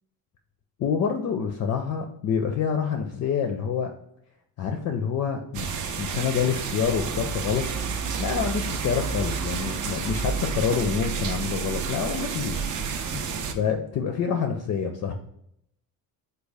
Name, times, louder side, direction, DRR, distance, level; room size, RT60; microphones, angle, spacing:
voice 1, 0.8-3.9 4.6-7.6 8.2-13.2 13.5-15.1, left 6 dB, 45° left, 4 dB, 0.4 m, -27 dB
sound 1, 5.5-13.5, right 5 dB, 50° right, 0.5 m, -30 dB
3.6 x 2.3 x 3.3 m, 0.73 s
cardioid pair, 120°, 39 cm